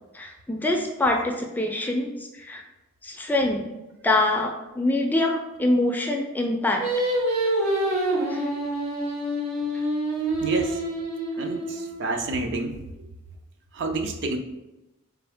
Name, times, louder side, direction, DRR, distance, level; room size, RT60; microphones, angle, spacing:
voice 1, 0.1-2.6 3.0-6.9 8.3-8.4, left 2 dB, 10° left, 2 dB, 0.3 m, -25 dB
Singing, 6.8-12.1, right 1 dB, 85° right, 1.3 m, -26 dB
voice 2, 10.4-10.8 11.4-12.8 13.7-14.4, right 2 dB, 55° right, 5 dB, 0.5 m, -28 dB
3.7 x 3.4 x 3.5 m, 1.0 s
head